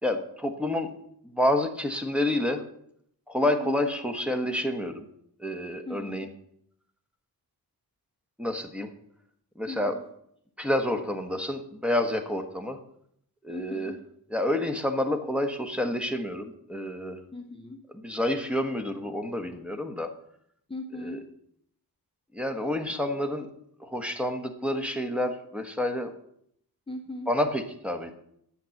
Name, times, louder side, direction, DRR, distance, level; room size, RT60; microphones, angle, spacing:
voice 1, 0.0-0.9 1.2-2.6 3.3-5.0 5.4-6.3 8.4-8.9 9.6-9.9 10.6-12.8 13.4-13.9 14.3-17.2 17.9-20.1 21.0-21.2 22.3-23.5 23.8-26.1 27.3-28.2, left 1 dB, 5° right, 6 dB, 1.2 m, -29 dB
voice 2, 3.4-3.7 5.9-6.3 9.7-10.0 13.5-14.0 17.3-17.8 20.7-21.3 23.1-23.2 26.9-27.3, left 2 dB, 15° left, 4 dB, 0.8 m, -39 dB
10.5 x 7.7 x 7.1 m, 0.71 s
wide cardioid pair, 160°, 38 cm